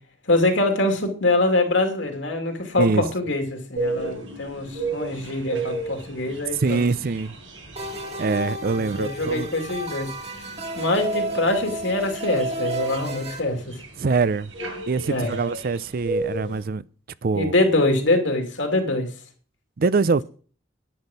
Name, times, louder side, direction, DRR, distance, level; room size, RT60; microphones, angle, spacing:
voice 1, 0.3-6.8 8.7-10.1 10.7-13.8 15.1-15.3 17.3-19.1, left 2 dB, 80° left, 2.8 m, -24 dB
sound 1, 3.8-16.6, right 3 dB, 90° right, 6.1 m, -34 dB
voice 2, 6.6-7.3 8.2-9.5 14.0-14.5 14.9-16.8 17.2-17.5 19.8-20.2, right 4 dB, 50° right, 0.5 m, -23 dB
sound 2, 7.8-13.4, right 2 dB, 35° right, 1.7 m, -31 dB
10.0 x 9.9 x 5.4 m
head